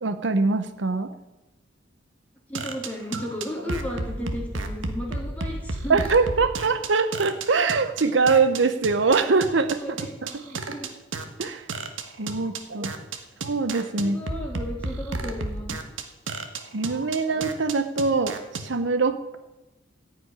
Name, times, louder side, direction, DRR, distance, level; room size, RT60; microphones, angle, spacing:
voice 1, 0.0-1.1 5.9-9.8 10.2-10.4 11.4-11.7 12.2-12.9 13.4-14.2 16.7-19.4, right 4 dB, 65° right, 9 dB, 0.8 m, -23 dB
voice 2, 2.5-6.1 9.8-10.9 13.9-15.8, equal, 10° left, -3 dB, 3.6 m, -34 dB
sound 1, 2.5-18.6, right 3 dB, 90° right, 1.5 m, -32 dB
15.0 x 6.0 x 9.8 m, 1.1 s
head